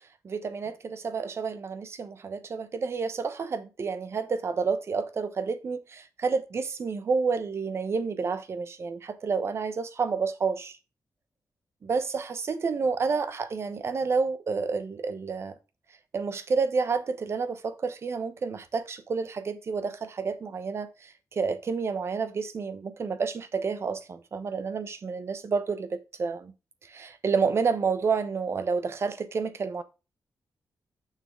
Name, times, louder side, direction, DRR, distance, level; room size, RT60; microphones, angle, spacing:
voice 1, 0.2-10.8 11.8-15.5 16.1-26.5 26.9-29.8, right 5 dB, 45° right, 0.9 m, -29 dB
6.7 x 6.3 x 3.7 m
wide cardioid pair, 155°, 6 cm